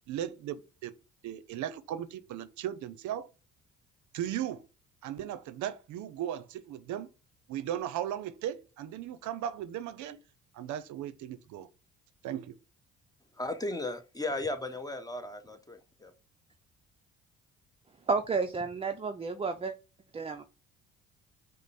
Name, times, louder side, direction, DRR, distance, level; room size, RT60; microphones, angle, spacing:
voice 1, 0.1-0.9 1.2-3.3 4.1-4.6 5.0-7.1 7.5-10.2 10.5-11.7 12.2-12.6, right 11 dB, 70° right, 0.5 m, -37 dB
voice 2, 13.3-16.1, left 2 dB, 10° left, 0.7 m, -36 dB
voice 3, 18.1-19.8 20.1-20.4, right 4 dB, 20° right, 0.4 m, -31 dB
5.0 x 2.0 x 4.1 m
supercardioid pair, 60°, 31 cm